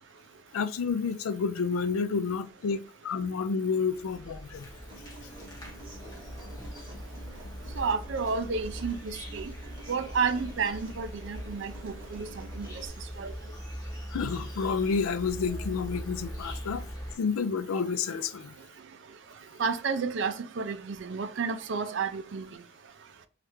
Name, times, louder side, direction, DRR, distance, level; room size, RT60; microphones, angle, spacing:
voice 1, 0.5-4.7 14.1-16.8 17.2-18.5, left 5 dB, 85° left, 0.4 m, -30 dB
Insect, 3.9-17.2, equal, 20° left, 0.7 m, -41 dB
Human voice / Acoustic guitar, 4.9-12.9, right 1 dB, 25° right, 0.9 m, -50 dB
voice 2, 7.7-9.5 9.9-12.9 13.2-13.3 19.6-22.5, right 5 dB, 55° right, 0.4 m, -31 dB
3.2 x 2.4 x 3.0 m
head